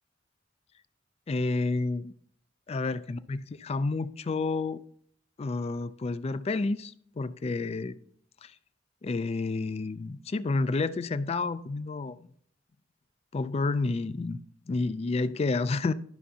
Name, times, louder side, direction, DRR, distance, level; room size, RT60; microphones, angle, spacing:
voice 1, 1.3-2.1 2.7-4.8 5.4-7.9 8.4-8.5 9.0-12.2 13.3-14.4 14.7-15.9, left 3 dB, 30° left, 0.3 m, -30 dB
12.5 x 5.5 x 2.8 m
head